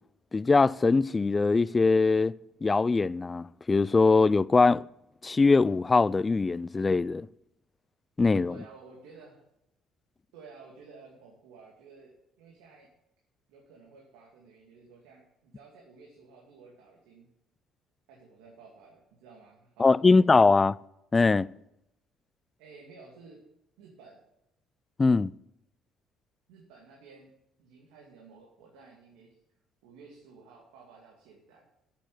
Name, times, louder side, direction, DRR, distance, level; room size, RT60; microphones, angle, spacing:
voice 1, 0.3-2.3 2.6-4.8 5.2-7.3 8.2-8.5 19.8-20.8 21.1-21.5 25.0-25.3, left 3 dB, 25° left, 0.3 m, -22 dB
voice 2, 8.5-9.4 10.3-12.9 13.5-17.3 18.1-20.3 22.6-23.4 23.8-24.2 26.5-27.3 27.6-29.4 29.8-31.7, right 4 dB, 90° right, 2.2 m, -53 dB
8.8 x 7.3 x 7.8 m
supercardioid pair, 85°, 0 cm